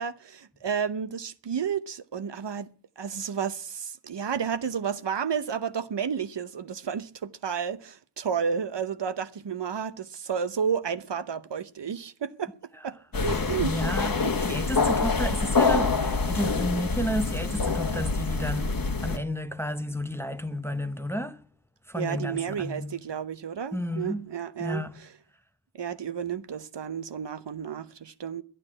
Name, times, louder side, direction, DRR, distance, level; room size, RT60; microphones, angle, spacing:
voice 1, 0.0-12.5 12.8-13.7 14.2-14.3 21.9-24.8 25.7-28.4, right 7 dB, 60° right, 0.8 m, -31 dB
sound 1, 13.1-19.2, left 4 dB, 45° left, 1.3 m, -26 dB
voice 2, 13.6-14.1 14.4-21.4 21.9-23.0 23.7-24.3 24.6-24.9, equal, 5° left, 0.8 m, -32 dB
11.0 x 10.0 x 8.7 m
cardioid pair, 55°, 49 cm